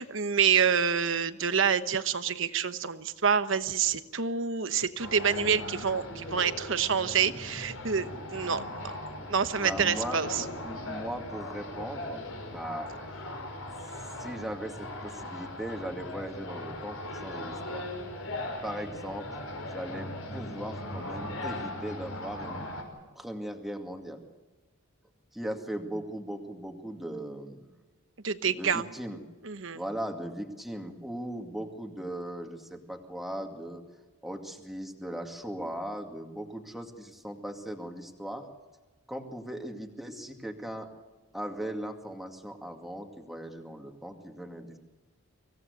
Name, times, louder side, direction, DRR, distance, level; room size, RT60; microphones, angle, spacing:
voice 1, 0.0-8.9 9.3-10.3 28.2-28.9 29.4-29.8, right 6 dB, 65° right, 11 dB, 1.1 m, -27 dB
sound 1, 5.0-22.8, left 1 dB, 90° left, 5.9 m, -39 dB
voice 2, 9.6-12.2 12.5-12.9 14.2-17.9 18.6-19.3 19.7-22.6 23.2-24.2 25.3-27.7 28.5-29.2 29.7-33.8 34.2-38.5 39.1-40.9 41.3-44.8, right 1 dB, ahead, 3 dB, 2.2 m, -38 dB
25.0 x 17.0 x 8.2 m, 1.3 s
head